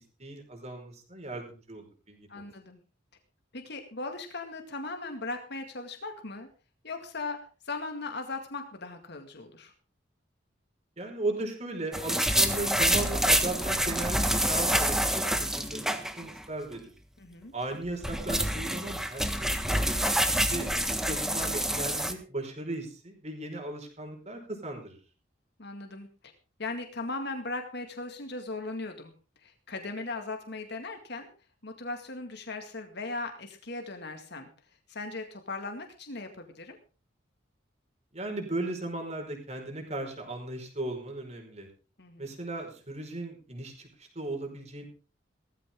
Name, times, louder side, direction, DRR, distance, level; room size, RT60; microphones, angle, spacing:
voice 1, 0.2-2.4 11.0-16.8 17.5-20.2 20.5-20.7 20.9-25.0 38.1-41.7 42.2-43.9 44.1-44.8, right 2 dB, 35° right, 3 dB, 5.0 m, -37 dB
voice 2, 2.3-2.8 3.5-6.5 6.8-7.4 7.7-9.7 17.2-17.5 25.6-26.1 26.6-29.1 29.4-31.3 31.6-34.5 34.9-36.8 42.0-42.3, left 3 dB, 60° left, 5 dB, 2.2 m, -38 dB
sound 1, 11.9-16.4 16.7-16.8 17.7-22.1, equal, ahead, 1.5 m, -27 dB
17.0 x 14.5 x 3.8 m, 0.35 s
head